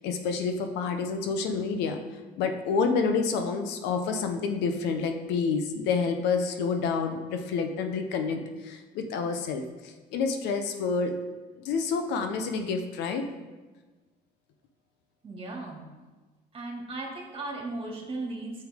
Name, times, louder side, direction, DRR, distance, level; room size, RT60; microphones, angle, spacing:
voice 1, 0.0-2.0 2.4-11.1 11.6-13.2, left 5 dB, 90° left, 6 dB, 0.9 m, -28 dB
voice 2, 15.2-15.9 16.5-18.6, right 2 dB, 35° right, -1 dB, 2.3 m, -36 dB
9.4 x 6.9 x 3.7 m, 1.3 s
cardioid pair, 110°, 17 cm